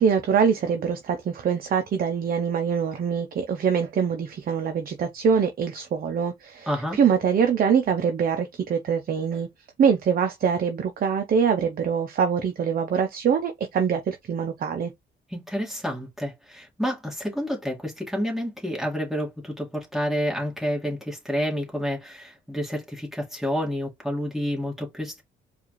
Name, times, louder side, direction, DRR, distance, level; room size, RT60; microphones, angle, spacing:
voice 1, 0.0-9.5 9.8-14.9, right 7 dB, 50° right, 0.6 m, -24 dB
voice 2, 6.7-7.0 15.3-25.2, equal, ahead, 1.9 m, -29 dB
4.6 x 2.5 x 3.0 m
cardioid pair, 90°, 20 cm